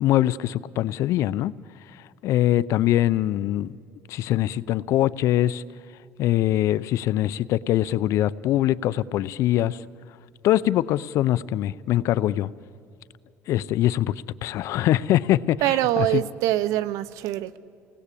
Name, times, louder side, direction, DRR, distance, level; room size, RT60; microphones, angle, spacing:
voice 1, 0.0-1.5 2.2-3.7 4.1-5.6 6.2-9.8 10.4-12.5 13.5-14.1 14.4-16.2, left 13 dB, 65° left, 0.6 m, -23 dB
voice 2, 15.6-17.6, right 14 dB, 80° right, 0.8 m, -24 dB
29.5 x 19.0 x 8.4 m
cardioid pair, 125°, 6 cm